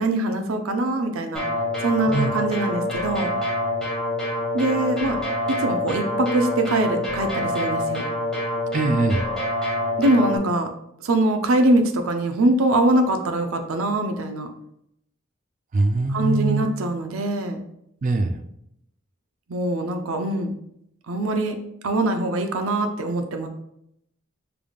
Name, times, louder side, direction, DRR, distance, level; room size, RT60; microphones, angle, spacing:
voice 1, 0.0-1.4 1.8-3.3 4.5-5.2 5.5-8.1 10.0-10.7 11.0-14.5 16.1-17.6 19.5-20.5 21.1-21.6 21.8-23.5, right 1 dB, 85° right, 6 dB, 0.6 m, -23 dB
sound 1, 1.3-10.4, left 1 dB, 5° left, 1.4 m, -26 dB
voice 2, 8.7-9.2 15.7-16.7 18.0-18.3, right 3 dB, 40° right, 7 dB, 0.4 m, -22 dB
5.0 x 3.4 x 2.4 m, 0.76 s
head